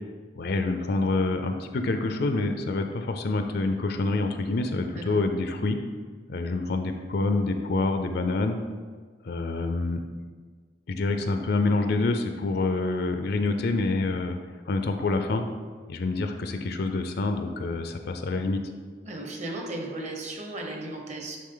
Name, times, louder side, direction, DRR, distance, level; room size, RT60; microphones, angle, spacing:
voice 1, 0.4-5.8 6.3-8.6 9.2-10.0 10.9-14.4 14.7-15.4 15.9-18.6, left 3 dB, 60° left, 6 dB, 0.5 m, -27 dB
voice 2, 19.0-21.4, right 2 dB, 40° right, 2 dB, 1.0 m, -35 dB
9.5 x 3.7 x 3.9 m, 1.5 s
head